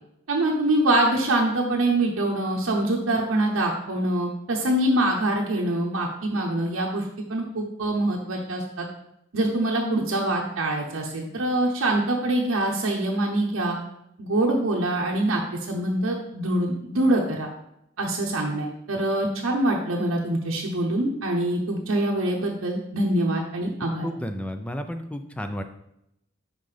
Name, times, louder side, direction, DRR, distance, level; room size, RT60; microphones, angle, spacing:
voice 1, 0.3-7.0 7.3-8.9 9.3-13.8 14.2-15.4 15.7-17.5 18.0-24.1, right 1 dB, 85° right, -1 dB, 0.8 m, -24 dB
voice 2, 23.8-25.6, equal, 5° left, 7 dB, 0.3 m, -32 dB
5.7 x 5.1 x 3.3 m, 0.79 s
head